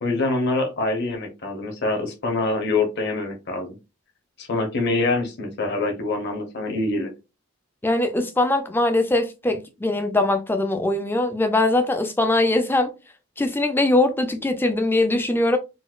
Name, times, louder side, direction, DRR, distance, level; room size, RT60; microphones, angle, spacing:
voice 1, 0.0-3.7 4.4-7.1, left 2 dB, 50° left, 0.8 m, -25 dB
voice 2, 7.8-12.9 13.4-15.6, left 2 dB, 10° left, 0.3 m, -21 dB
3.9 x 2.2 x 2.3 m
head